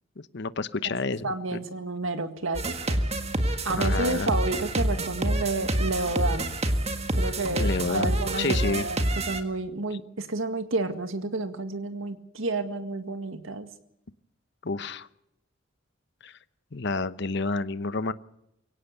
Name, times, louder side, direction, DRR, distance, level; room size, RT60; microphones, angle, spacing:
voice 1, 0.3-1.6 3.7-4.3 7.5-8.8 9.9-10.0 14.6-15.1 16.2-16.3 16.7-18.1, left 3 dB, 60° left, 14 dB, 0.9 m, -29 dB
voice 2, 1.2-3.0 3.7-6.6 7.1-13.7, right 2 dB, 80° right, 8 dB, 1.9 m, -30 dB
sound 1, 2.5-9.4, right 1 dB, 30° right, 1.8 m, -27 dB
23.5 x 17.0 x 8.1 m, 0.80 s
head